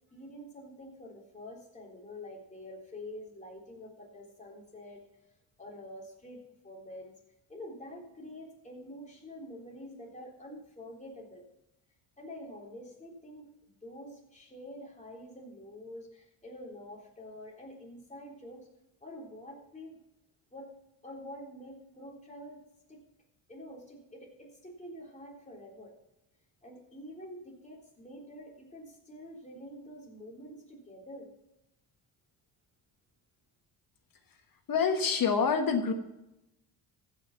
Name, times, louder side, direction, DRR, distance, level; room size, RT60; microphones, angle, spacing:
voice 1, 0.1-5.0 5.6-7.1 7.5-11.4 12.2-18.7 19.0-20.0 20.5-20.7 21.0-22.6 22.9-23.0 23.5-25.9 26.6-31.3, left 1 dB, 15° left, -2 dB, 3.7 m, -47 dB
voice 2, 34.7-35.9, left 5 dB, 55° left, 6 dB, 1.4 m, -26 dB
15.0 x 5.9 x 5.9 m, 0.90 s
cardioid pair, 110°, 42 cm